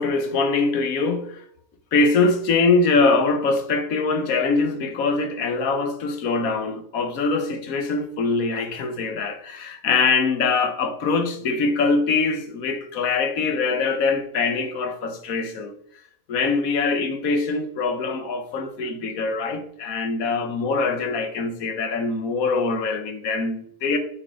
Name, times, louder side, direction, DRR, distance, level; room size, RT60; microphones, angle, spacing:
voice 1, 0.0-1.4 1.9-15.7 16.3-24.0, left 4 dB, 75° left, 1.4 m, -23 dB
8.3 x 4.9 x 4.4 m
omnidirectional pair, 1.5 m